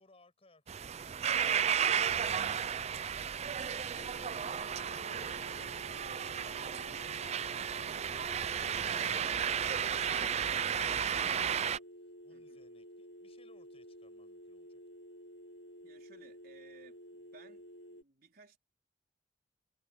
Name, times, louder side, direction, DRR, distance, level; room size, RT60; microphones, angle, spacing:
voice 1, 0.0-2.3 3.2-4.1 4.5-5.7 12.2-14.8, left 2 dB, 35° left, 8.0 m, -66 dB
sound 1, 0.7-11.8, right 8 dB, 40° right, 0.4 m, -33 dB
sound 2, 3.8-18.0, equal, 85° left, 3.1 m, -52 dB
voice 2, 12.3-12.6 15.8-18.6, right 4 dB, 55° right, 4.1 m, -60 dB
head